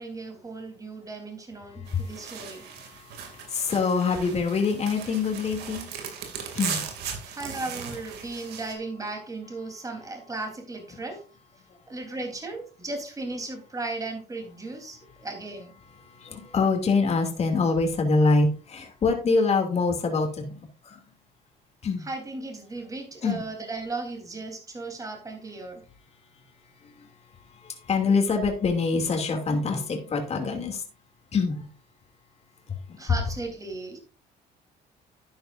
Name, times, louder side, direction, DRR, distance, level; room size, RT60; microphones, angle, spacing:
voice 1, 0.0-2.7 7.2-11.2 11.9-15.7 22.0-25.8 33.0-34.0, right 3 dB, 20° right, 3.7 m, -36 dB
sound 1, 1.9-8.7, right 7 dB, 75° right, 2.7 m, -38 dB
voice 2, 2.7-5.9 6.5-6.8 16.1-20.6 20.8-21.0 21.8-22.1 23.2-23.4 26.8-27.1 27.5-30.8 31.3-31.7 32.7-33.0, left 4 dB, 40° left, 2.7 m, -25 dB
11.5 x 9.5 x 2.6 m
cardioid pair, 110°, 17 cm